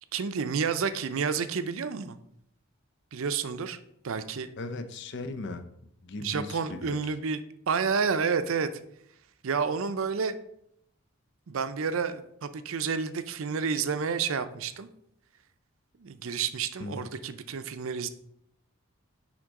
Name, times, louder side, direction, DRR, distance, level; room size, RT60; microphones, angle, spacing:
voice 1, 0.1-2.2 3.1-3.8 4.0-4.5 6.2-7.4 7.7-8.7 9.4-10.4 11.5-14.9 16.0-18.1, right 5 dB, 65° right, 11 dB, 0.5 m, -30 dB
voice 2, 4.6-5.7 6.0-7.1 16.8-17.1, left 2 dB, 50° left, 9 dB, 0.6 m, -38 dB
9.8 x 3.7 x 3.7 m, 0.75 s
head